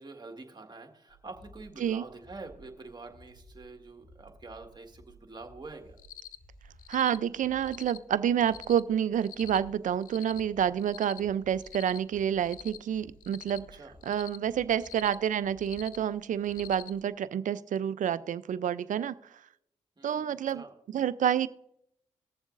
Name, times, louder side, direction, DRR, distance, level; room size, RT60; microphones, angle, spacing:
voice 1, 0.0-6.0 13.7-13.9 20.0-20.7, right 3 dB, 30° right, 4 dB, 1.7 m, -46 dB
sound 1, 1.1-16.9, right 1 dB, 30° left, 2.9 m, -57 dB
Cricket, 6.0-6.4 6.8-7.2 7.6-8.0 8.4-8.8 9.2-9.6 10.0-10.4 10.8-11.2 11.6-12.0 12.4-12.8 13.2-13.6 14.0-14.4 14.8-15.1 15.6-16.0 16.4-16.9, left 12 dB, 80° left, 0.4 m, -46 dB
voice 2, 6.9-13.6 14.1-19.2 20.0-20.6 20.9-21.5, right 9 dB, 65° right, 16 dB, 0.5 m, -28 dB
20.0 x 7.1 x 2.5 m, 0.77 s
supercardioid pair, 55°, 14 cm